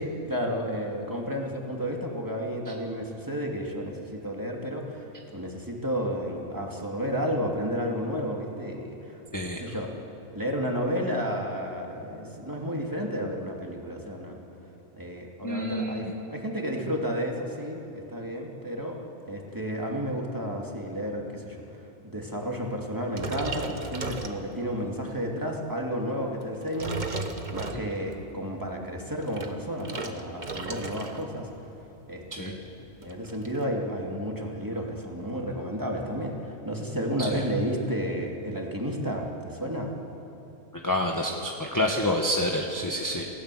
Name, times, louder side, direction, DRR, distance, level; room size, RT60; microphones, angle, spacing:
voice 1, 0.0-9.2 9.5-9.9 10.3-14.4 15.0-19.0 19.3-21.6 22.0-27.1 27.5-31.5 32.1-32.7 33.0-39.9, equal, 15° right, 0 dB, 2.6 m, -32 dB
voice 2, 9.3-9.6 15.4-16.1 27.7-27.8 32.3-32.5 37.2-37.3 40.7-43.3, left 1 dB, 15° left, 0 dB, 1.4 m, -28 dB
sound 1, 23.1-24.9 25.4-25.6 26.4-28.2 29.0-31.3 31.6-31.9 32.2-32.3 32.5-33.6, right 3 dB, 35° right, 1.4 m, -36 dB
28.5 x 17.5 x 7.8 m, 3.0 s
omnidirectional pair, 1.5 m